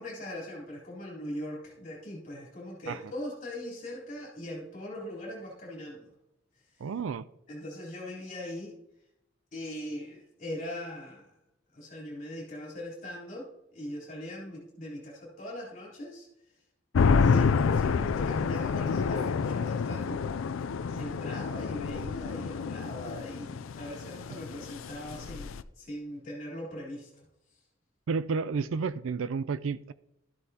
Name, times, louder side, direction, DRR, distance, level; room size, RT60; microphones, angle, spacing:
voice 1, 0.0-6.1 7.5-8.7 9.5-11.2 11.7-16.3 17.2-20.2 20.9-27.1, left 1 dB, 40° left, 3.5 m, -40 dB
voice 2, 6.8-7.2 28.1-29.9, right 5 dB, 85° right, 0.4 m, -31 dB
sound 1, 16.9-25.6, left 5 dB, 80° left, 0.4 m, -28 dB
13.0 x 7.9 x 2.8 m
head